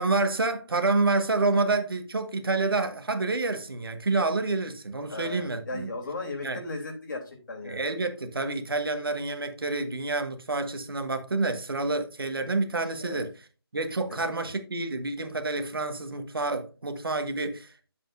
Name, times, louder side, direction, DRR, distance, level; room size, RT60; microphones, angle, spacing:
voice 1, 0.0-5.9 6.4-6.6 7.6-13.3 13.7-17.9, right 3 dB, 60° right, 1.6 m, -28 dB
voice 2, 5.1-7.8 13.0-13.2, left 3 dB, 50° left, 3.2 m, -36 dB
9.0 x 7.6 x 2.6 m
figure-of-eight pair, 160°, 13 cm